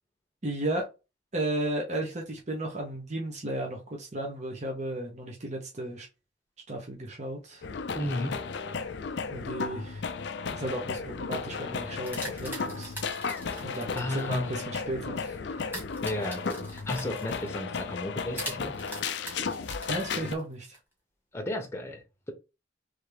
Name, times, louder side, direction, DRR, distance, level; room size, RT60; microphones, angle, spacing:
voice 1, 0.4-0.8 1.3-6.1 6.7-7.6 9.3-10.0 10.5-12.9 13.6-15.7 19.9-20.8, right 1 dB, 35° right, 1.0 m, -34 dB
sound 1, 7.6-20.3, left 5 dB, 60° left, 0.5 m, -34 dB
voice 2, 7.9-8.4 13.7-14.7 16.0-18.7 21.3-22.3, left 1 dB, 15° left, 0.9 m, -34 dB
sound 2, 12.0-14.2 15.7-17.5 18.4-20.8, right 1 dB, 10° right, 1.8 m, -42 dB
3.6 x 3.4 x 3.4 m
head